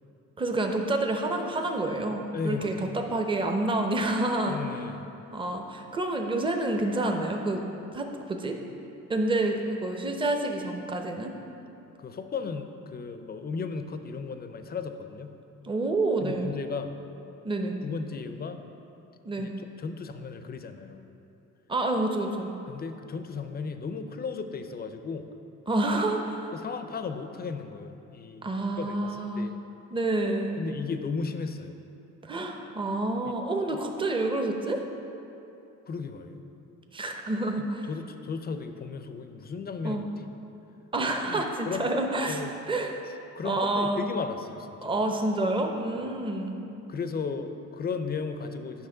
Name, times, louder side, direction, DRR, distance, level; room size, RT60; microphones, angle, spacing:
voice 1, 0.4-4.6 5.3-7.6 7.9-8.6 9.1-11.3 15.6-16.5 17.4-17.7 19.2-19.5 21.7-22.5 25.7-26.5 28.4-29.5 29.9-30.6 32.2-34.8 36.9-37.9 39.8-40.1 40.9-42.4 42.7-42.9 43.4-44.1 44.8-46.6, right 2 dB, 15° right, 3 dB, 0.7 m, -28 dB
voice 2, 2.3-2.9 4.5-5.1 12.0-15.4 16.2-16.9 17.8-18.6 19.4-21.1 22.7-25.3 26.5-28.5 28.8-29.5 30.6-31.7 35.9-36.4 37.6-40.2 41.2-41.9 42.3-42.6 43.3-44.9 46.9-48.9, left 5 dB, 30° left, 8 dB, 0.5 m, -35 dB
8.0 x 5.8 x 3.8 m, 2.8 s
cardioid pair, 90°, 30 cm